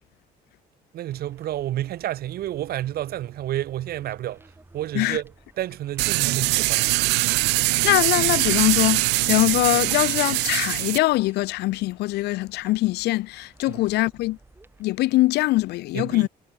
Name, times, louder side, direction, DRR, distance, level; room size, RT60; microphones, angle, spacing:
voice 1, 0.9-7.0 13.7-13.8 15.9-16.3, right 13 dB, 65° right, 1.9 m, -30 dB
sound 1, 1.1-14.8, right 2 dB, 15° right, 6.3 m, -55 dB
sound 2, 6.0-11.0, right 23 dB, 90° right, 0.5 m, -22 dB
voice 2, 7.5-14.4 14.8-16.3, left 18 dB, 80° left, 0.6 m, -23 dB
cardioid pair, 110°, 17 cm